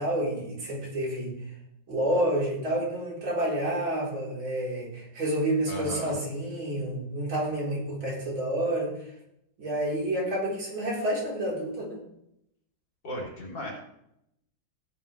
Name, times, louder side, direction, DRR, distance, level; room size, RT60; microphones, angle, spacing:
voice 1, 0.0-1.4 1.9-8.9 9.6-12.0, right 1 dB, 80° right, -5 dB, 5.1 m, -29 dB
voice 2, 5.7-6.2 13.0-13.7, equal, 60° left, -3 dB, 4.2 m, -35 dB
16.5 x 9.5 x 3.4 m, 0.79 s
omnidirectional pair, 2.1 m